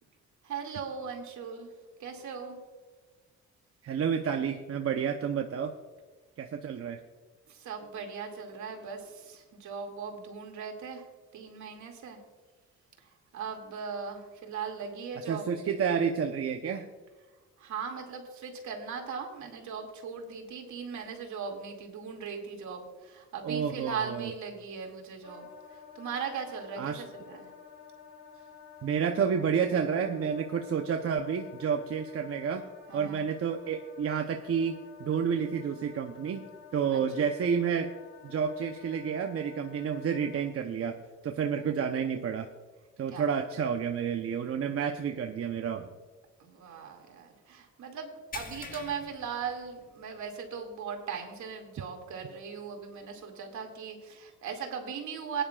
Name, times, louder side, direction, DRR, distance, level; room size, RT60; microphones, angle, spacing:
voice 1, 0.4-1.7 2.0-2.6 7.5-11.0 11.3-12.2 13.3-15.4 17.6-25.5 25.9-27.5 32.9-33.2 36.9-37.0 41.6-41.7 43.1-43.3 46.4-55.4, right 6 dB, 70° right, 2 dB, 2.4 m, -39 dB
voice 2, 3.8-5.7 6.4-7.0 15.3-16.9 23.4-24.3 26.8-27.0 28.8-32.6 32.9-36.4 36.7-37.9 38.2-41.0 41.2-42.5 43.0-45.9, right 7 dB, 50° right, 4 dB, 0.8 m, -30 dB
Wind instrument woodwind instrument, 25.2-40.5, left 7 dB, 70° left, 3.3 m, -51 dB
sound 1, 48.3-50.2 50.6-50.8 51.2-51.3 53.0-53.1, left 5 dB, 30° left, 1.1 m, -45 dB
18.5 x 10.0 x 2.4 m, 1.3 s
cardioid pair, 90°, 30 cm